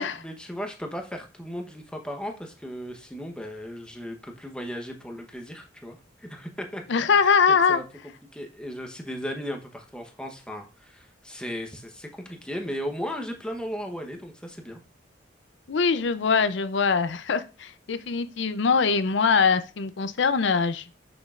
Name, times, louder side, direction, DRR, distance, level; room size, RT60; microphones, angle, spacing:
voice 1, 0.0-6.8 7.7-7.8 8.3-14.8, equal, 5° left, 3 dB, 1.0 m, -36 dB
voice 2, 6.9-7.8 15.7-20.8, left 5 dB, 75° left, 13 dB, 0.5 m, -22 dB
6.3 x 6.1 x 2.5 m, 0.32 s
head